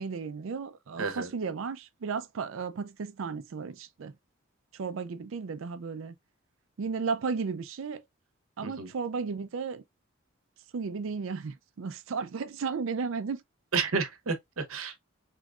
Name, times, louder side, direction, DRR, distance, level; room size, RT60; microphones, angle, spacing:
voice 1, 0.0-4.1 4.7-6.1 6.8-8.0 8.6-9.8 10.7-13.4, right 5 dB, 65° right, 0.4 m, -34 dB
voice 2, 1.0-1.3 8.6-8.9 13.7-15.0, right 5 dB, 85° right, 0.8 m, -31 dB
3.6 x 3.1 x 2.3 m
head